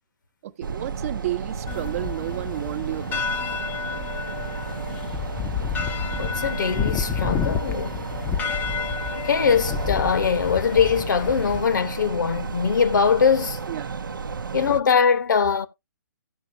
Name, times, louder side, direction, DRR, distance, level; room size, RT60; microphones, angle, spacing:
voice 1, 0.4-3.2 13.7-13.9, right 14 dB, 45° right, 0.8 m, -31 dB
sound 1, 0.6-14.8, right 5 dB, 75° right, 0.7 m, -33 dB
sound 2, 1.7-11.6, left 7 dB, 15° left, 0.6 m, -30 dB
voice 2, 6.2-8.0 9.2-13.6 14.5-15.7, left 6 dB, 65° left, 1.1 m, -22 dB
16.5 x 5.9 x 2.6 m
figure-of-eight pair, 130°, 11 cm